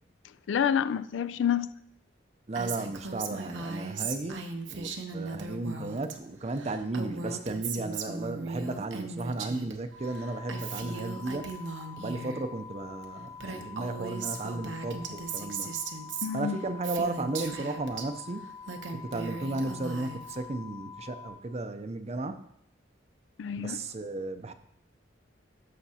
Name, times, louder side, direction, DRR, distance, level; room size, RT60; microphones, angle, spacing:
voice 1, 0.5-1.7 16.2-16.6 23.4-23.8, left 8 dB, 75° left, 0.3 m, -28 dB
voice 2, 2.5-11.5 12.0-15.7 16.3-18.5 18.9-22.4 23.6-24.5, right 2 dB, 35° right, 0.5 m, -34 dB
Female speech woman speaking, 2.5-6.1 6.4-9.7 10.0-12.4 13.0-13.1 13.3-18.0 18.5-20.4, right 4 dB, 80° right, 0.9 m, -38 dB
sound 1, 9.9-21.3, left 6 dB, 35° left, 1.7 m, -46 dB
13.0 x 5.8 x 2.8 m
head